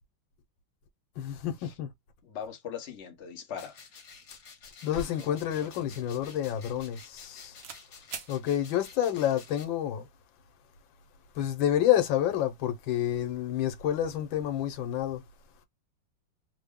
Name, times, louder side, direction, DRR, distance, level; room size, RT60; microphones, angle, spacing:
voice 1, 1.2-1.9 4.8-7.6 8.3-10.1 11.3-15.2, left 11 dB, 85° left, 1.5 m, -29 dB
voice 2, 2.2-3.8, left 8 dB, 45° left, 1.0 m, -40 dB
sound 1, 3.6-9.6, left 5 dB, 65° left, 1.5 m, -51 dB
sound 2, 4.2-4.4 4.6-7.3 7.6-7.8 8.1-8.3, right 3 dB, 65° right, 1.2 m, -44 dB
3.5 x 2.1 x 3.5 m
omnidirectional pair, 2.0 m